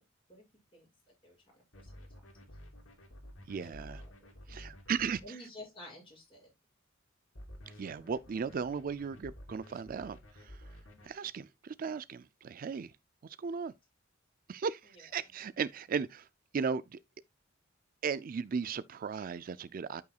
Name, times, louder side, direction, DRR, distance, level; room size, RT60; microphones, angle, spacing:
voice 1, 1.2-2.1 3.6-4.1 4.5-4.6 5.2-6.5, left 1 dB, 25° left, 6.7 m, -51 dB
sound 1, 1.7-5.2 7.3-11.1, equal, 80° left, 3.0 m, -51 dB
voice 2, 3.5-4.0 4.5-5.4 7.7-10.6 11.0-12.9 13.2-13.7 14.5-16.3 16.5-17.0 18.0-20.0, right 6 dB, 45° right, 0.4 m, -36 dB
13.0 x 5.7 x 2.3 m
head